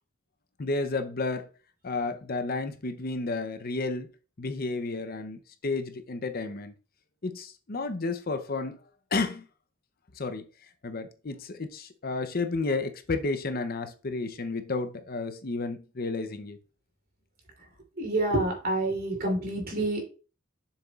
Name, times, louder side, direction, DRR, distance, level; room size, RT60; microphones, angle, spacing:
voice 1, 0.6-1.5 1.8-4.1 4.4-6.7 7.2-8.8 9.1-9.5 10.2-10.4 10.8-16.6, left 3 dB, 50° left, 0.7 m, -31 dB
voice 2, 18.0-20.0, right 2 dB, 50° right, 3.1 m, -27 dB
7.1 x 6.9 x 2.4 m
head